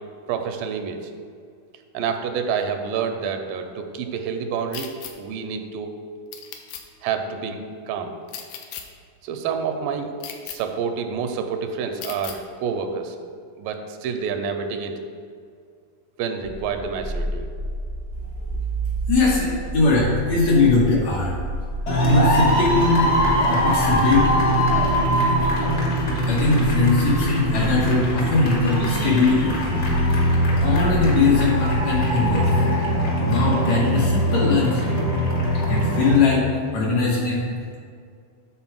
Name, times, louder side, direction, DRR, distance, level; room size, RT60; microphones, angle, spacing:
voice 1, 0.3-1.0 1.9-4.9 5.2-5.9 7.0-8.2 9.2-10.1 10.4-13.2 13.6-14.9 16.2-17.5, right 6 dB, 90° right, 6 dB, 2.3 m, -28 dB
sound 1, 4.7-5.1 6.3-6.8 8.3-8.8 10.2-10.6 12.0-12.4, left 9 dB, 80° left, 2.0 m, -35 dB
sound 2, 16.4-32.4, right 1 dB, 55° right, 0.3 m, -32 dB
voice 2, 19.1-21.3 22.0-24.4 25.3-25.4 26.3-29.8 30.1-32.5 33.2-34.9 35.5-36.4 36.7-37.4, left 3 dB, 65° left, -4 dB, 2.0 m, -21 dB
sound 3, 21.9-36.2, equal, 45° left, 1.3 m, -21 dB
7.9 x 4.1 x 6.0 m, 2.2 s
omnidirectional pair, 3.9 m